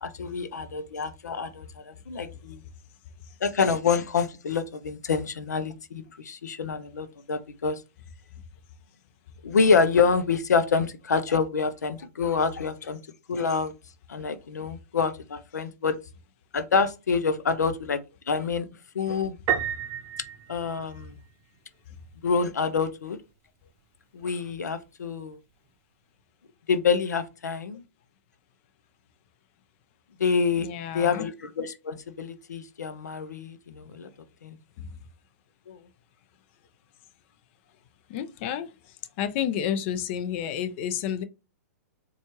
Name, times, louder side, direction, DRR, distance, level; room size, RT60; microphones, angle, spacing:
voice 1, 0.0-2.6 3.4-7.8 9.4-13.0 13.3-13.7 14.1-16.0 16.5-18.0 18.3-18.7 18.9-19.4 20.5-21.2 22.2-23.2 24.1-25.4 26.7-27.8 30.2-30.7 30.9-34.1 34.4-34.6 35.7-35.8, left 5 dB, 90° left, 0.5 m, -27 dB
Piano, 19.5-21.3, right 9 dB, 30° right, 0.7 m, -30 dB
voice 2, 30.6-31.3 38.1-38.7 39.2-41.2, left 9 dB, 45° left, 0.5 m, -30 dB
4.2 x 2.3 x 3.0 m
hypercardioid pair, 130°, 9 cm